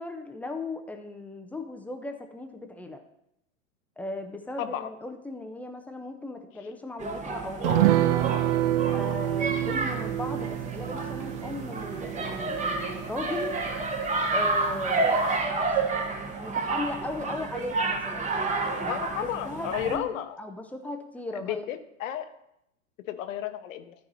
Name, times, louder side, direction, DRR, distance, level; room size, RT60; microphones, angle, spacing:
voice 1, 0.0-3.0 4.0-8.4 8.9-13.6 14.3-15.3 16.4-18.3 18.8-21.6, left 2 dB, 5° left, 5 dB, 0.4 m, -37 dB
voice 2, 4.6-4.9 18.9-20.4 21.3-22.3 23.0-23.9, left 11 dB, 70° left, 10 dB, 0.9 m, -33 dB
sound 1, 7.0-20.0, right 3 dB, 15° right, 1.0 m, -30 dB
sound 2, 7.6-14.4 14.7-14.8 15.2-15.3, right 14 dB, 60° right, 0.6 m, -28 dB
12.5 x 4.7 x 4.0 m, 0.80 s
hypercardioid pair, 120°, 41 cm